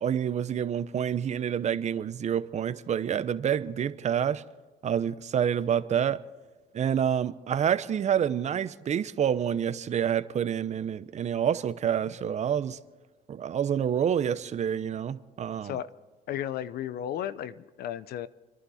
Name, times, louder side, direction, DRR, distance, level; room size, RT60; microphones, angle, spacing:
voice 1, 0.0-4.4 4.8-6.2 6.7-12.8 13.3-15.8, right 9 dB, 45° right, 0.8 m, -28 dB
voice 2, 16.3-18.3, left 11 dB, 70° left, 0.7 m, -34 dB
29.0 x 11.0 x 4.3 m
cardioid pair, 110°, 17 cm